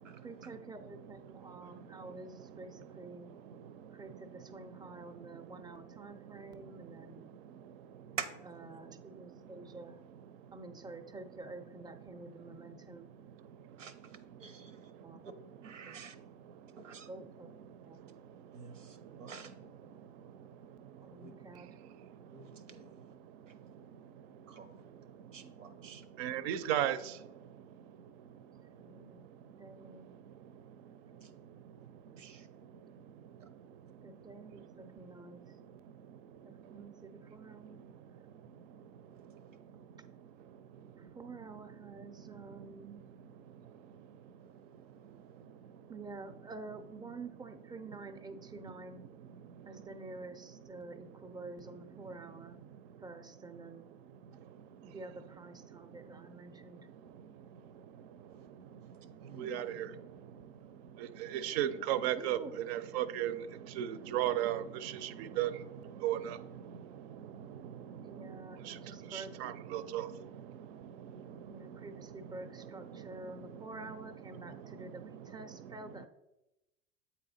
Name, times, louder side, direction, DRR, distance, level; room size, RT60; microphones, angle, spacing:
voice 1, 0.2-3.3 3.9-7.3 8.4-10.0 10.5-13.1 15.0-15.2 15.8-16.0 17.1-17.5 17.8-18.0 19.3-19.9 21.0-21.7 28.8-29.3 29.6-30.1 34.0-35.4 36.4-37.8 41.0-43.0 45.9-49.0 49.7-52.6 53.0-53.9 54.8-56.8 62.0-62.5 68.0-69.4 71.4-76.1, right 3 dB, 10° right, 9 dB, 0.6 m, -49 dB
voice 2, 14.4-14.9 15.2-15.3 15.6-16.2 16.8-17.1 18.5-19.5 21.2-21.3 22.3-22.9 24.5-24.8 25.3-26.0 31.2-31.3 32.2-32.5 59.2-59.8, right 6 dB, 90° right, 11 dB, 0.8 m, -46 dB
voice 3, 26.2-27.0 59.4-59.7 61.4-62.4 62.7-63.3 63.8-65.1 65.4-65.5 66.0-66.2 69.1-70.0, right 12 dB, 60° right, 14 dB, 0.6 m, -33 dB
8.4 x 4.0 x 4.2 m, 0.95 s
hypercardioid pair, 85°, 37 cm